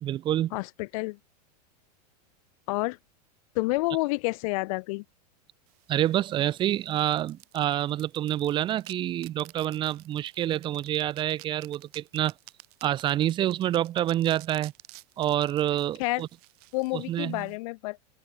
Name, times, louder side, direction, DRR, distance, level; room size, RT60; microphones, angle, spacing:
voice 1, 0.0-0.5 5.9-12.3 12.8-14.7 15.2-16.3 16.9-17.5, right 12 dB, 25° right, 0.4 m, -27 dB
voice 2, 0.5-1.2 2.7-3.0 3.5-5.0 16.0-16.2 16.7-18.0, left 25 dB, 55° left, 0.5 m, -29 dB
sound 1, 5.7-17.6, right 21 dB, 65° right, 6.7 m, -53 dB
supercardioid pair, 135°, 21 cm